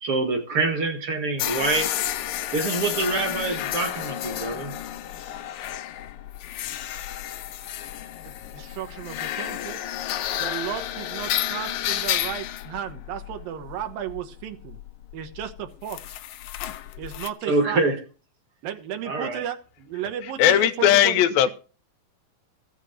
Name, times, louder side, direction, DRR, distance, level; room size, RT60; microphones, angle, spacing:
voice 1, 0.0-1.9 2.5-4.7 17.5-18.0 19.0-19.4, right 3 dB, 50° right, 1.9 m, -25 dB
sound 1, 1.4-17.3, left 12 dB, 75° left, 1.9 m, -31 dB
voice 2, 8.2-9.8 10.4-14.8 15.1-16.2 17.0-17.8 18.6-21.5, right 9 dB, 75° right, 3.0 m, -34 dB
voice 3, 20.4-21.5, left 11 dB, 90° left, 2.8 m, -18 dB
15.5 x 7.6 x 6.4 m
omnidirectional pair, 4.2 m